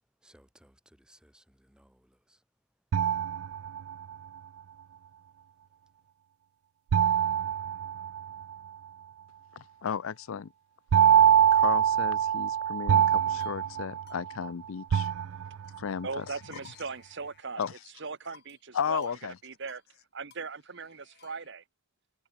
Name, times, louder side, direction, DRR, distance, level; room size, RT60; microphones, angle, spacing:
voice 1, 0.2-2.4 2.9-3.2, right 1 dB, 5° right, 2.1 m, -62 dB
sound 1, 2.9-4.1 6.9-8.5 10.9-14.5 14.9-15.8, right 9 dB, 85° right, 0.4 m, -24 dB
voice 2, 9.6-10.5 11.5-15.1 15.8-16.2 17.6-17.7 18.7-19.4, left 7 dB, 75° left, 0.5 m, -34 dB
sound 2, 13.1-13.7 14.1-14.2 14.5-14.6 14.9-15.9 16.2-17.9 18.3-18.7 19.0-19.2 19.5-19.9 20.3-21.5, left 6 dB, 50° left, 2.6 m, -57 dB
voice 3, 16.0-17.6 18.0-19.1 19.4-19.8 20.1-21.6, right 4 dB, 55° right, 1.3 m, -39 dB
head